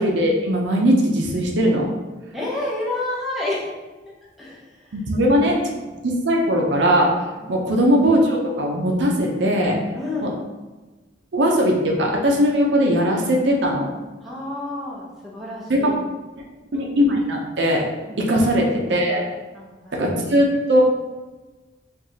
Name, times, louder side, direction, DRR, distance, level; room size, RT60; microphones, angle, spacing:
voice 1, 0.0-1.9 4.9-5.6 6.0-7.1 7.5-9.8 10.2-10.3 11.3-13.9 15.7-15.9 16.7-17.8 18.2-19.2 19.9-20.8, equal, 65° right, 0 dB, 0.5 m, -19 dB
voice 2, 2.3-3.7 4.4-5.0 7.4-7.6 9.9-10.3 14.2-16.0 18.1-18.2 19.5-20.0, left 2 dB, ahead, -6 dB, 0.7 m, -30 dB
4.5 x 2.3 x 2.7 m, 1.2 s
head